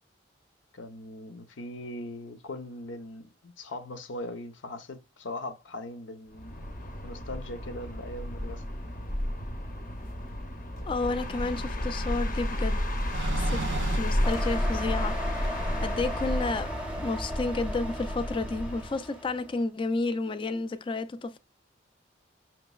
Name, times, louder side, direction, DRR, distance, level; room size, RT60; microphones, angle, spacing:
voice 1, 0.7-6.6 7.0-8.6, left 1 dB, 85° left, 0.8 m, -40 dB
sound 1, 6.3-19.0, left 1 dB, 45° left, 0.7 m, -32 dB
voice 2, 10.9-12.8 13.1-15.2 15.5-16.7 17.0-21.4, left 3 dB, 25° left, 0.4 m, -31 dB
sound 2, 13.1-15.3 16.1-16.2 17.7-17.8 19.5-19.6, right 6 dB, 65° right, 0.3 m, -36 dB
sound 3, 14.2-19.5, equal, 5° right, 0.7 m, -38 dB
5.9 x 3.0 x 2.3 m
head